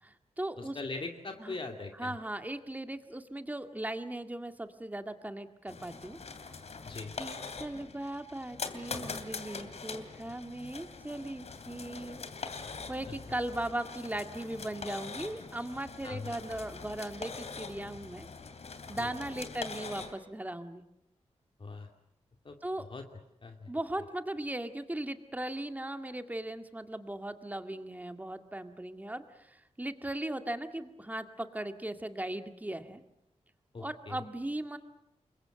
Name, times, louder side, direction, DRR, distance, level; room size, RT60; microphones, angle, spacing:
voice 1, 0.0-0.8 1.4-1.6 2.0-6.2 7.2-12.2 12.9-18.3 18.9-20.8 22.6-22.9 23.7-33.0 33.8-34.8, right 1 dB, 15° right, 7 dB, 2.1 m, -38 dB
voice 2, 0.6-2.2 6.8-7.1 13.1-13.2 16.0-16.3 19.0-19.5 21.6-21.9 22.4-23.1 23.4-23.7 33.7-34.2, left 3 dB, 45° left, 4 dB, 2.4 m, -41 dB
sound 1, 5.7-20.1, left 4 dB, 65° left, 2.9 m, -43 dB
27.5 x 23.0 x 7.8 m, 0.83 s
wide cardioid pair, 95°, 12 cm